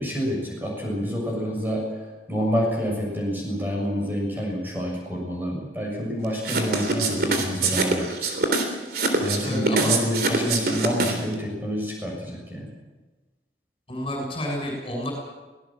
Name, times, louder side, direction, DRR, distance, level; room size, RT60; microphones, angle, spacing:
voice 1, 0.0-1.8 2.3-8.3 9.2-12.7, equal, 10° right, -1 dB, 7.0 m, -28 dB
sound 1, 6.4-11.3, right 3 dB, 55° right, 3.6 m, -24 dB
voice 2, 6.5-6.9 9.4-9.9 13.9-15.1, left 1 dB, 30° left, 1 dB, 6.8 m, -30 dB
24.5 x 18.0 x 7.6 m, 1.2 s
head